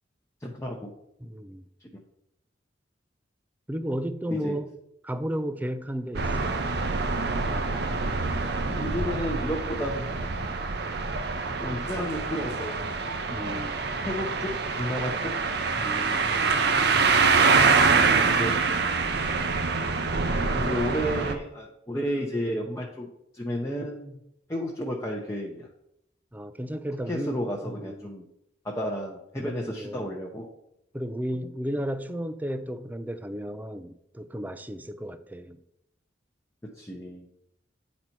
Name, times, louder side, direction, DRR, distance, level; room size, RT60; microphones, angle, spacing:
voice 1, 0.4-0.9 1.9-2.0 4.3-4.6 8.7-10.3 11.6-12.8 14.0-15.4 18.2-18.6 20.4-23.1 23.3-24.2 24.5-25.7 27.1-28.2 28.6-30.5 36.6-37.2, equal, 15° left, -1 dB, 0.7 m, -32 dB
voice 2, 1.2-1.6 3.7-4.7 5.0-6.6 13.3-13.9 15.8-16.5 26.3-28.1 29.7-30.0 30.9-35.6, equal, 10° right, 11 dB, 0.4 m, -34 dB
sound 1, 6.1-21.3, right 4 dB, 65° right, 0.7 m, -25 dB
9.1 x 4.2 x 4.5 m, 0.79 s
head